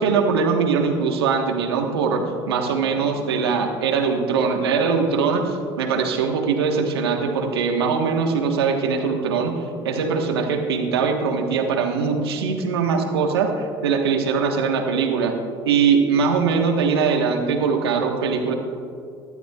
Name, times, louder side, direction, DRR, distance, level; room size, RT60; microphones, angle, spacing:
voice 1, 0.0-9.6 9.8-15.3 15.6-18.5, right 5 dB, 85° right, 3 dB, 1.3 m, -21 dB
sound 1, 2.1-5.5, left 3 dB, 90° left, 1.5 m, -46 dB
19.5 x 12.0 x 2.4 m, 2.4 s
hypercardioid pair, 70°, 13 cm